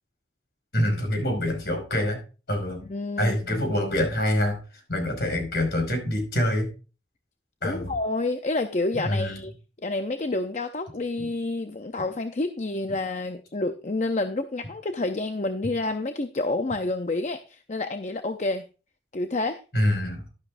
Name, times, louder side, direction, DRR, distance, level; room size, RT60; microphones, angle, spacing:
voice 1, 0.7-2.2 2.5-2.8 3.2-4.6 4.9-6.7 7.6-7.9 9.0-9.4 11.2-11.3 19.7-20.2, left 1 dB, 60° left, 4 dB, 5.2 m, -25 dB
voice 2, 2.9-3.6 7.6-9.5 9.8-18.6 19.1-19.6, left 2 dB, 40° left, 8 dB, 0.6 m, -29 dB
12.0 x 11.0 x 2.5 m, 0.33 s
head